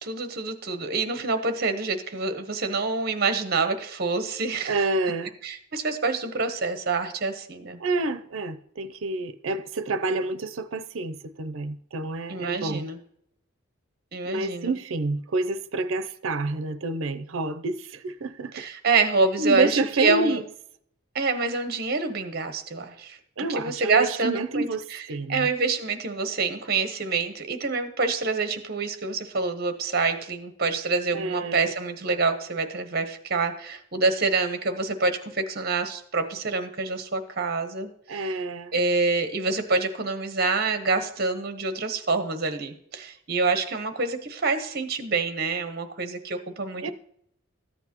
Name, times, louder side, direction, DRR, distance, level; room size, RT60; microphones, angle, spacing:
voice 1, 0.0-4.8 5.4-7.8 12.3-13.0 14.1-14.7 18.5-20.4 21.1-23.2 23.5-25.0 25.3-38.3 38.7-46.9, right 4 dB, 45° right, 0.9 m, -26 dB
voice 2, 4.7-5.3 7.8-12.9 14.2-18.5 19.4-20.4 23.4-25.5 31.1-31.7 38.1-38.7 46.8-46.9, right 3 dB, 70° right, 0.5 m, -28 dB
13.5 x 8.1 x 2.9 m
head